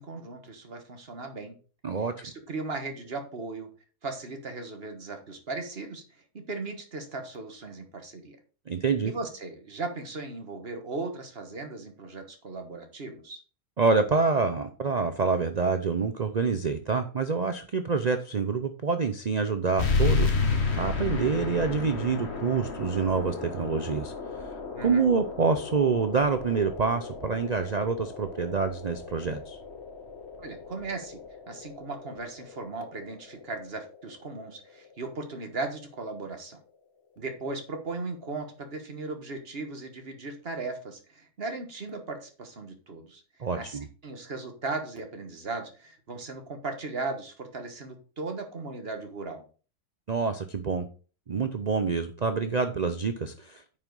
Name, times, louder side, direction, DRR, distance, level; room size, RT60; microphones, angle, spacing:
voice 1, 0.0-1.5 2.2-3.7 4.0-8.4 9.0-13.4 24.7-25.1 30.4-31.2 31.5-36.6 37.2-43.2 43.6-49.5, right 3 dB, 40° right, 5 dB, 1.5 m, -37 dB
voice 2, 8.7-9.1 13.8-24.1 24.4-24.5 24.8-29.6 43.4-43.9 50.1-50.8 51.3-53.8, right 4 dB, 85° right, 8 dB, 0.3 m, -27 dB
sound 1, 19.8-34.9, left 4 dB, 45° left, 1.4 m, -33 dB
9.3 x 5.5 x 3.9 m, 0.37 s
omnidirectional pair, 1.7 m